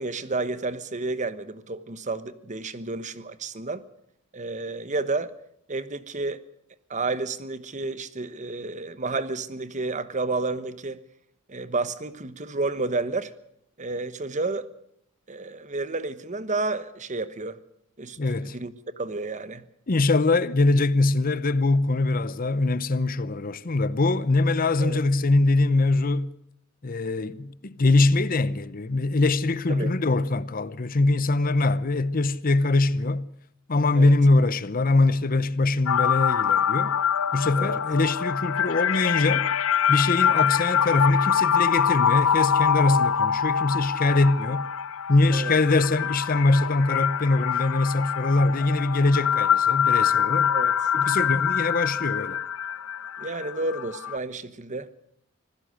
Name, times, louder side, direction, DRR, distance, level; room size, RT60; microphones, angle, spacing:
voice 1, 0.0-3.8 4.3-5.3 5.7-6.4 6.9-11.0 11.5-13.3 13.8-14.7 15.3-17.6 18.0-19.7 24.8-25.0 29.7-30.0 33.9-34.1 37.6-37.8 45.3-45.6 50.5-50.8 53.2-55.0, right 3 dB, 35° right, 1.1 m, -31 dB
voice 2, 18.2-18.6 19.9-26.3 26.8-33.3 33.7-37.0 37.3-39.5 39.9-44.7 45.1-50.5 50.9-52.4, left 2 dB, 40° left, 0.8 m, -23 dB
sound 1, 35.9-54.2, left 8 dB, 75° left, 0.7 m, -24 dB
25.5 x 16.5 x 6.4 m
head